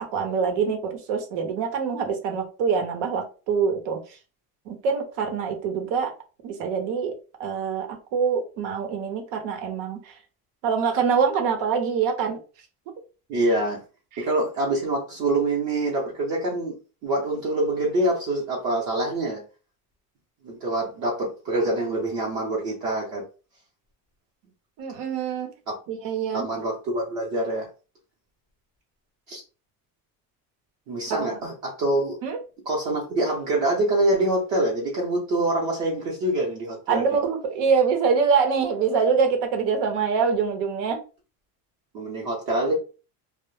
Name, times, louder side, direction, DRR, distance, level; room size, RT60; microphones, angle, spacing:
voice 1, 0.0-4.2 4.7-6.1 6.4-7.1 7.4-10.2 10.6-12.4 14.1-14.3 24.8-25.5 25.9-26.5 31.1-31.4 32.2-32.4 36.9-41.0, right 6 dB, 85° right, 5 dB, 0.8 m, -25 dB
voice 2, 13.3-13.8 14.2-16.7 17.0-19.4 20.4-23.2 26.3-27.7 29.3-29.4 30.9-32.2 32.7-37.1 41.9-42.7, right 1 dB, 45° right, -4 dB, 0.7 m, -25 dB
2.1 x 2.0 x 3.0 m, 0.34 s
cardioid pair, 175°, 41 cm